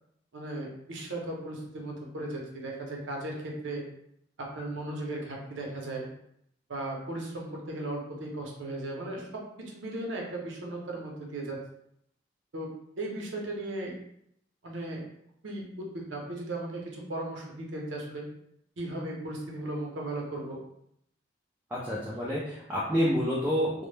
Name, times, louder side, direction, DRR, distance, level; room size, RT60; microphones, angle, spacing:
voice 1, 0.3-3.8 4.4-6.1 6.7-11.6 12.5-14.0 14.6-15.0 15.4-18.2 18.8-20.6, right 1 dB, 85° right, -1 dB, 0.6 m, -36 dB
voice 2, 21.7-23.9, equal, 10° right, -7 dB, 0.4 m, -28 dB
2.1 x 2.0 x 3.1 m, 0.74 s
head